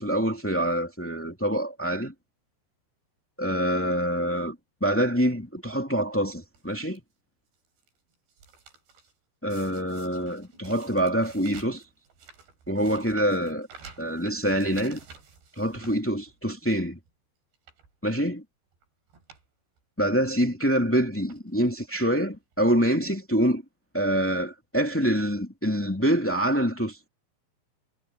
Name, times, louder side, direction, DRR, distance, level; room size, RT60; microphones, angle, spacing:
voice 1, 0.0-2.1 3.4-4.5 4.8-7.0 9.4-11.8 12.7-13.7 14.0-15.0 15.5-17.0 18.0-18.4 20.0-23.6 23.9-27.1, equal, 5° left, 1.0 m, -25 dB
sound 1, 6.5-7.0 7.5-7.9 8.1-9.1 9.5-16.6 17.0-17.1 17.5-17.9 18.7-18.8 19.1-19.5 19.8-19.9 20.8-20.9 21.3-21.8 22.5-22.6 22.8-22.9, right 5 dB, 65° right, 7.4 m, -50 dB
omnidirectional pair, 5.2 m